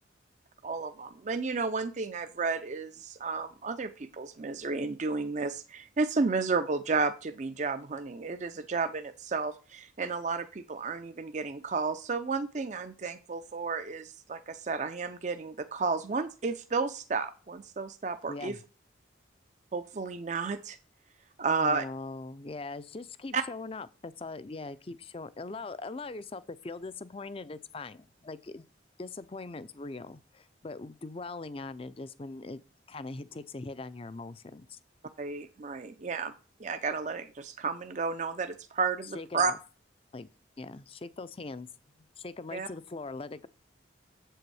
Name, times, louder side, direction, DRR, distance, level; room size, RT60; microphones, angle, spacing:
voice 1, 0.6-18.6 19.7-20.8 21.4-21.8 23.3-23.4 35.2-36.3 36.6-39.5 42.5-42.7, right 4 dB, 40° right, 0.5 m, -32 dB
voice 2, 18.3-18.6 21.5-28.6 29.0-32.6 32.9-34.8 39.1-39.6 40.1-40.3 40.6-41.7 42.2-43.5, left 3 dB, 30° left, 0.5 m, -41 dB
7.8 x 7.6 x 4.8 m
head